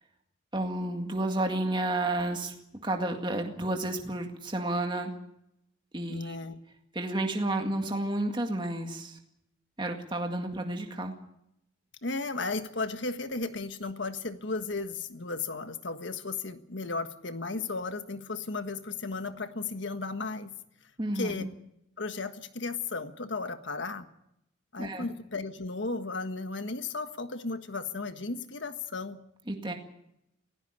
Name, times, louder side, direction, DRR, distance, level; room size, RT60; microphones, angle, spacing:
voice 1, 0.5-2.6 2.8-5.1 5.9-6.4 6.9-9.2 9.8-11.1 21.0-21.5 24.8-25.1 29.5-29.7, right 1 dB, 25° right, 3 dB, 2.0 m, -31 dB
voice 2, 6.1-6.6 12.0-20.5 21.1-21.5 22.0-24.1 24.7-29.2, left 3 dB, 65° left, 9 dB, 1.5 m, -35 dB
18.0 x 17.0 x 9.9 m, 0.81 s
head